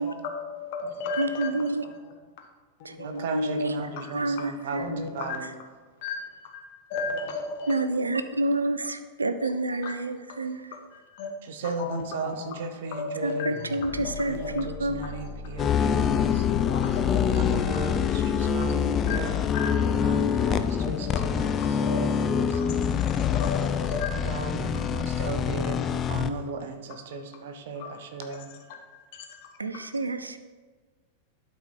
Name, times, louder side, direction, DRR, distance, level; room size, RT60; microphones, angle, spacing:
voice 1, 0.0-2.1 2.9-3.2 3.8-4.0 4.8-5.4 6.0-8.1 9.7-9.9 10.3-10.4 10.9-11.3 11.8-12.5 12.9-15.6 16.6-17.4 17.7-17.9 19.0-19.2 19.5-19.7 20.8-22.6 22.9-24.2 24.7-24.9 28.9-29.5, left 4 dB, 50° left, 2 dB, 1.3 m, -36 dB
voice 2, 1.2-1.8 3.0-3.8 4.1-5.1 7.7-10.6 13.2-15.1 29.6-30.4, right 2 dB, 80° right, 11 dB, 0.4 m, -28 dB
voice 3, 3.0-5.5 11.4-13.6 14.3-16.7 17.3-19.5 19.8-22.8 24.1-28.5, right 3 dB, 55° right, 8 dB, 0.8 m, -36 dB
sound 1, 13.5-20.6, left 4 dB, 80° left, 1.5 m, -40 dB
sound 2, 15.6-26.3, left 7 dB, 25° left, 0.4 m, -25 dB
12.0 x 4.2 x 4.5 m, 1.4 s
figure-of-eight pair, 90°, 0 cm